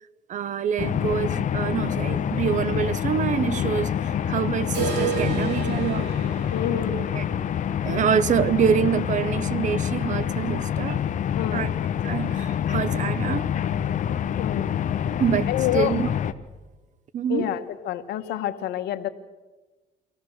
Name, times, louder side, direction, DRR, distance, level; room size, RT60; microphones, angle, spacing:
voice 1, 0.3-6.1 7.1-7.2 7.8-11.0 11.5-11.7 12.0-13.5 15.2-16.1 17.1-17.5, right 8 dB, 45° right, 0.8 m, -26 dB
sound 1, 0.8-16.3, left 9 dB, 50° left, 0.9 m, -26 dB
sound 2, 4.7-10.6 10.8-10.9 11.3-11.4 11.9-12.0 12.9-13.0, right 7 dB, 75° right, 3.5 m, -34 dB
voice 2, 6.5-7.0 11.3-11.7 14.4-14.7 15.5-15.9 17.3-19.1, left 11 dB, 80° left, 1.3 m, -28 dB
24.5 x 16.5 x 6.4 m
cardioid pair, 110°, 17 cm